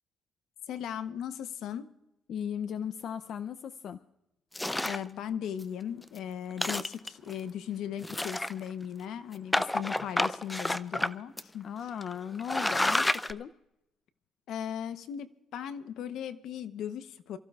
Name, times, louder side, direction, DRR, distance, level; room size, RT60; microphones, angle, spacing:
voice 1, 0.7-1.9 4.8-11.7 14.5-17.4, left 9 dB, 75° left, 11 dB, 0.9 m, -37 dB
voice 2, 2.3-4.0 11.6-13.5, left 8 dB, 55° left, 9 dB, 0.5 m, -37 dB
sound 1, 4.5-5.1 5.6-5.7 6.0-6.2 6.5-7.3 8.0-8.8 9.5-11.1 11.4-11.5 12.0-12.1 12.4-13.3, left 1 dB, 10° left, 0.5 m, -29 dB
28.5 x 15.0 x 2.4 m, 0.88 s
cardioid pair, 125°, 0 cm